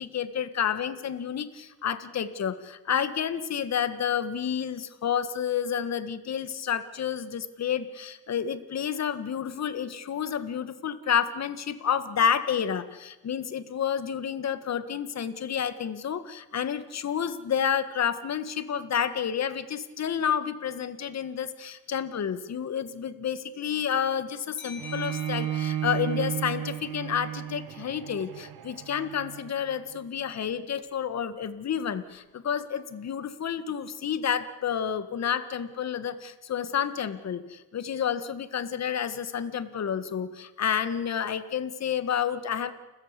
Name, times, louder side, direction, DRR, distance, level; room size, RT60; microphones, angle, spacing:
voice 1, 0.0-42.7, left 8 dB, 50° left, 13 dB, 1.7 m, -30 dB
sound 1, 24.6-27.9, left 5 dB, 30° left, 7.5 m, -46 dB
Bowed string instrument, 24.8-30.0, right 11 dB, 65° right, 1.1 m, -34 dB
29.5 x 14.5 x 8.3 m, 1.1 s
cardioid pair, 110°, 35 cm